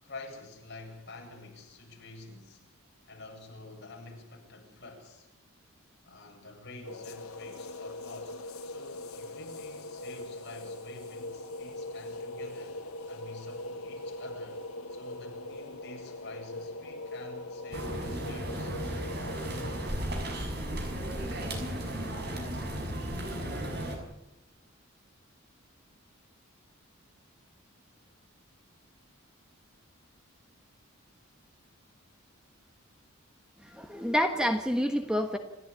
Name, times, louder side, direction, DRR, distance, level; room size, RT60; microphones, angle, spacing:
voice 1, 0.0-2.6 3.1-5.3 6.1-14.6 14.9-18.7 28.0-28.1, left 2 dB, 50° left, 1 dB, 7.7 m, -48 dB
sound 1, 6.8-19.9, left 2 dB, 85° left, 1.3 m, -41 dB
sound 2, 17.7-24.0, right 1 dB, 50° right, 6.3 m, -35 dB
voice 2, 33.6-35.4, equal, 5° right, 6 dB, 1.4 m, -28 dB
29.0 x 14.0 x 9.9 m, 0.92 s
head